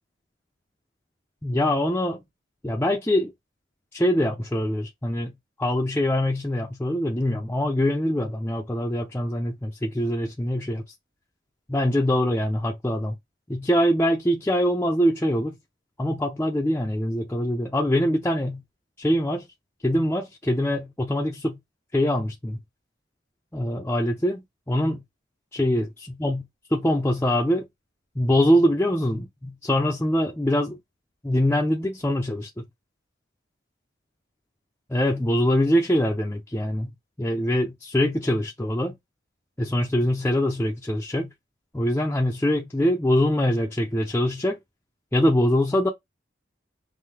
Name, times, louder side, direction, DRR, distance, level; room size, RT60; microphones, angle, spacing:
voice 1, 1.4-2.2 2.6-3.3 3.9-5.3 5.6-10.8 11.7-13.2 13.5-15.6 16.0-18.6 19.0-19.5 19.8-21.6 21.9-22.6 23.5-24.4 24.7-25.0 25.5-25.9 26.2-26.4 26.7-27.7 28.2-30.8 31.2-32.6 34.9-36.9 37.2-39.0 39.6-41.3 41.7-44.6 45.1-45.9, equal, 10° left, 0.6 m, -23 dB
5.6 x 2.2 x 3.3 m
head